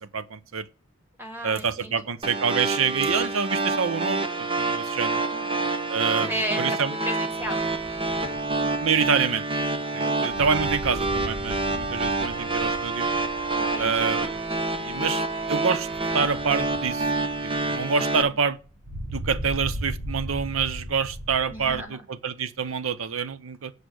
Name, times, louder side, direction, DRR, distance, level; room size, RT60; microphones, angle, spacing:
voice 1, 0.0-0.7 1.4-4.3 4.6-5.2 5.9-6.9 8.8-9.5 9.9-13.1 13.8-14.4 14.8-15.9 16.1-17.1 17.4-18.6 19.1-23.7, right 6 dB, 85° right, 0.7 m, -27 dB
voice 2, 1.2-2.1 5.3-5.8 6.3-7.6 10.0-10.4 13.5-14.2 21.5-22.0, equal, 10° right, 1.6 m, -35 dB
sound 1, 2.2-18.2, right 2 dB, 25° right, 0.8 m, -27 dB
sound 2, 7.3-21.8, equal, 45° right, 2.8 m, -38 dB
8.3 x 4.8 x 6.2 m
head